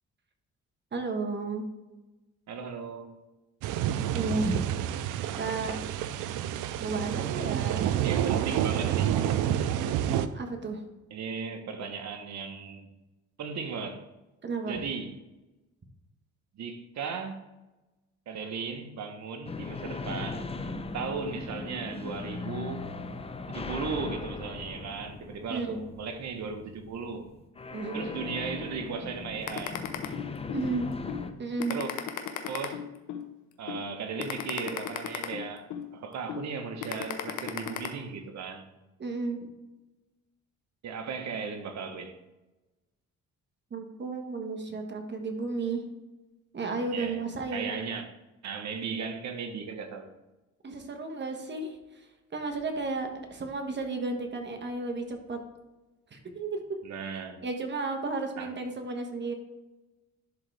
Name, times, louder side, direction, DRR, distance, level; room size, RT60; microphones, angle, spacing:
voice 1, 0.9-1.7 4.1-4.6 5.4-5.9 6.8-7.9 8.5-8.6 10.3-10.8 14.4-14.8 25.5-25.8 27.7-28.1 30.5-30.9 31.4-31.8 39.0-39.5 43.7-45.8 46.5-47.7 50.6-55.4 56.1-56.6 57.1-59.3, right 3 dB, 35° right, 1.3 m, -33 dB
voice 2, 2.5-3.1 5.3-5.6 8.0-9.1 11.1-12.9 13.4-14.0 14.7-15.2 16.5-17.4 18.3-20.5 20.9-22.9 23.5-27.3 27.9-29.8 31.7-31.9 32.5-32.8 33.6-38.6 40.8-42.2 46.9-47.2 47.5-48.1 48.4-50.1 56.8-57.4 58.4-58.5, right 5 dB, 65° right, 1.1 m, -36 dB
sound 1, 3.6-10.3, right 10 dB, 90° right, 0.5 m, -29 dB
sound 2, 19.5-31.3, left 3 dB, 20° left, 0.6 m, -39 dB
sound 3, 29.5-30.6 31.1-31.2 31.6-33.2 33.7-33.8 34.2-35.8 36.3-36.4 36.8-37.9, left 10 dB, 80° left, 0.8 m, -34 dB
11.0 x 3.8 x 3.4 m
cardioid pair, 90°, 30 cm